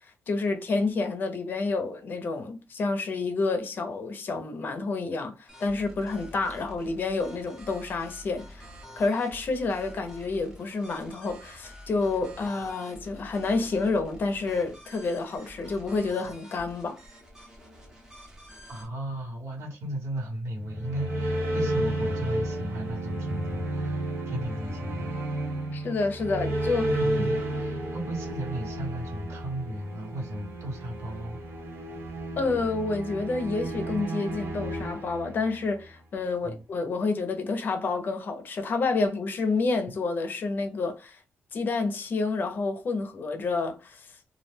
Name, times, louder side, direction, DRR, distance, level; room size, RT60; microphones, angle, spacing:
voice 1, 0.3-8.7 9.0-17.0 25.7-26.9 32.4-41.2 41.5-44.1, left 3 dB, 45° left, 0.6 m, -29 dB
sound 1, 5.5-18.9, equal, 10° right, 0.7 m, -48 dB
voice 2, 18.7-25.1 26.9-31.4 36.4-36.6, right 1 dB, 75° right, 1.1 m, -35 dB
sound 2, 20.6-35.8, right 1 dB, 50° right, 0.9 m, -32 dB
2.3 x 2.1 x 3.2 m
wide cardioid pair, 165°, 5 cm